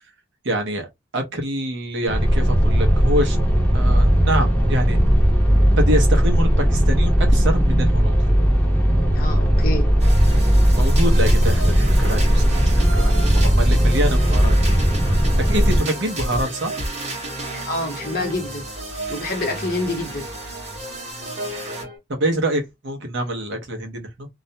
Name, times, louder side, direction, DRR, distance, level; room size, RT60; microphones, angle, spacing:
voice 1, 0.4-0.9 1.1-3.4 3.7-5.0 5.8-8.3 10.7-15.1 15.5-16.7 22.1-24.3, right 1 dB, 55° right, 0.7 m, -25 dB
sound 1, 2.1-15.8, equal, 5° left, 0.7 m, -17 dB
voice 2, 9.1-9.9 17.7-18.6 19.1-20.2, left 2 dB, 45° left, 0.8 m, -27 dB
sound 2, 10.0-22.0, right 1 dB, 30° right, 1.0 m, -31 dB
2.4 x 2.1 x 2.7 m
head